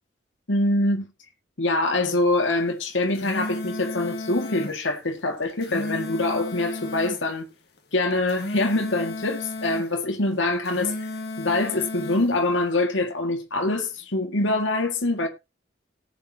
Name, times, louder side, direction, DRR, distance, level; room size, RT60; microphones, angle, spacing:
voice 1, 0.5-1.1 1.6-7.4 7.9-10.9 11.4-15.3, left 2 dB, 90° left, 2.0 m, -24 dB
sound 1, 2.9-4.8 5.4-7.2 8.1-9.9 10.5-12.3, left 2 dB, 55° left, 2.2 m, -33 dB
19.0 x 6.9 x 2.9 m
head